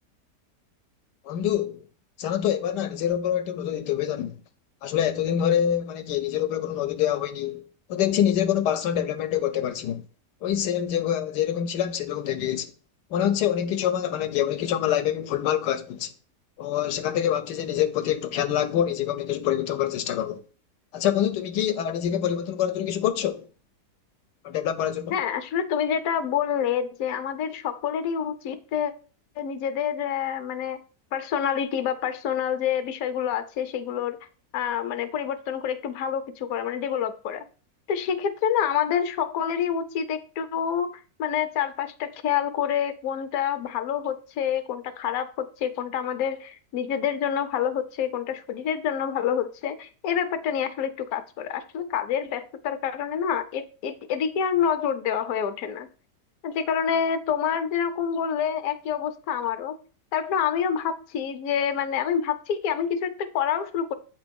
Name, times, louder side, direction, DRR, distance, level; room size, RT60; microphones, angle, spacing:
voice 1, 1.2-1.8 2.2-4.4 4.8-7.6 7.9-10.0 10.4-12.7 13.1-16.1 16.6-20.4 20.9-23.5 24.4-25.1, left 10 dB, 85° left, 1.3 m, -26 dB
voice 2, 25.1-28.9 29.4-30.8 31.1-34.2 34.5-37.4 37.9-40.9 41.2-55.9 56.4-59.8 60.1-63.9, left 8 dB, 65° left, 1.1 m, -27 dB
8.3 x 3.7 x 5.2 m
omnidirectional pair, 1.8 m